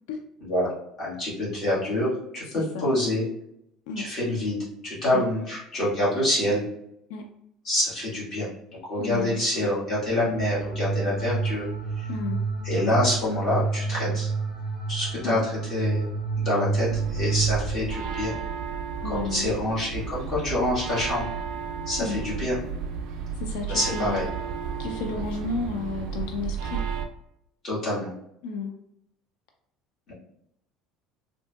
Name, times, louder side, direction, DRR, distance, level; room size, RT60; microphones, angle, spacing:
voice 1, 1.0-3.3 4.0-6.6 7.6-8.5 8.9-11.7 12.0-12.1 12.6-14.3 14.9-16.1 16.4-18.3 19.0-21.3 21.9-22.6 23.7-24.2 27.6-28.1 30.1-30.2, left 1 dB, 30° left, -8 dB, 1.5 m, -26 dB
voice 2, 2.5-2.9 3.9-4.1 5.1-5.2 7.1-7.2 9.0-9.8 12.1-12.4 15.2-15.4 19.0-19.5 22.0-22.2 23.4-24.2 24.8-26.9 28.4-28.7, left 3 dB, 85° left, 4 dB, 0.3 m, -32 dB
sound 1, 10.3-17.8, right 4 dB, 5° right, 0.9 m, -29 dB
sound 2, 16.9-27.1, right 6 dB, 55° right, 0.3 m, -33 dB
3.4 x 2.7 x 2.2 m, 0.76 s
cardioid pair, 180°, 0 cm